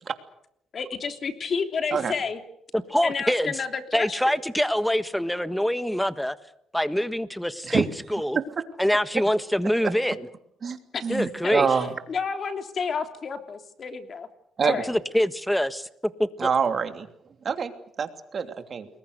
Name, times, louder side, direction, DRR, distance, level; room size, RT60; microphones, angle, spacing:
voice 1, 0.7-2.4 3.0-4.4 10.9-14.3 14.6-14.9, left 5 dB, 50° left, 6 dB, 3.2 m, -31 dB
voice 2, 2.7-3.5 3.9-6.3 6.7-8.4 8.8-10.3 11.1-11.7 14.9-15.9 16.2-16.5, equal, 5° left, 12 dB, 1.5 m, -25 dB
voice 3, 11.0-11.9 14.6-14.8 16.4-17.1 17.4-17.7 18.0-18.9, right 6 dB, 45° right, 7 dB, 3.0 m, -25 dB
30.0 x 21.5 x 6.7 m, 0.76 s
cardioid pair, 90°, 0 cm